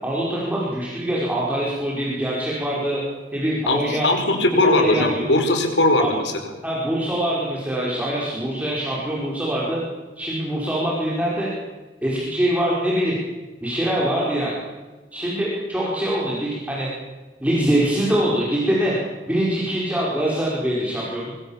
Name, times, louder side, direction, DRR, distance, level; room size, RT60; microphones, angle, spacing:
voice 1, 0.0-3.0 3.3-4.1 4.6-5.4 6.0-6.1 6.6-9.8 10.2-11.5 12.0-13.2 13.6-14.6 15.1-16.9 17.4-19.0 19.3-21.3, right 1 dB, 10° right, -6 dB, 5.3 m, -23 dB
voice 2, 3.7-6.3, left 2 dB, 90° left, 5 dB, 4.9 m, -19 dB
25.5 x 24.5 x 7.4 m, 1.3 s
head